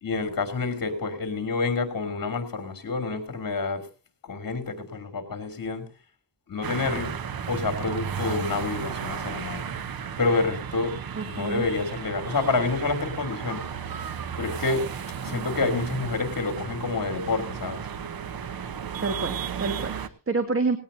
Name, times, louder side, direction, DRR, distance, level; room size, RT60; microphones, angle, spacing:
voice 1, 0.0-3.9 4.2-5.8 6.5-7.1 7.5-9.6 10.2-11.0 11.2-13.6 14.4-14.9 15.2-17.8, left 3 dB, 50° left, 6 dB, 3.1 m, -28 dB
sound 1, 6.6-20.1, right 7 dB, 55° right, 1.0 m, -34 dB
voice 2, 11.1-11.7 19.0-20.8, right 3 dB, 30° right, 7 dB, 1.7 m, -28 dB
18.5 x 17.5 x 2.7 m, 0.32 s
wide cardioid pair, 125°, 42 cm